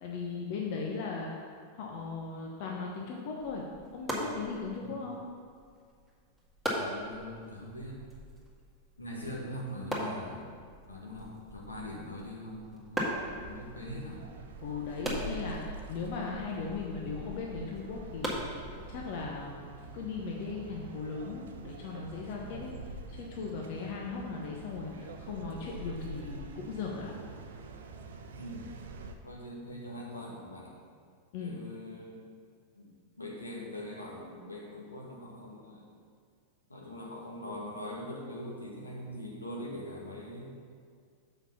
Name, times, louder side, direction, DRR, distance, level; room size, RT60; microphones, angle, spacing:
voice 1, 0.0-3.7 3.9-5.2 14.6-18.4 18.9-19.6 19.9-22.7 23.2-27.1 31.3-31.6, left 4 dB, 50° left, -1 dB, 1.0 m, -38 dB
sound 1, 3.4-19.2, equal, 5° right, 1.8 m, -40 dB
voice 2, 6.7-8.0 9.0-10.5 10.9-13.2 13.4-14.2 28.4-28.7 29.2-30.8 31.4-32.2 32.8-32.9 33.2-35.8 36.7-40.5, left 1 dB, 80° left, -2 dB, 1.6 m, -42 dB
sound 2, 13.1-29.1, right 3 dB, 60° right, 0.7 m, -46 dB
7.2 x 5.5 x 5.7 m, 2.1 s
figure-of-eight pair, 90°, 0 cm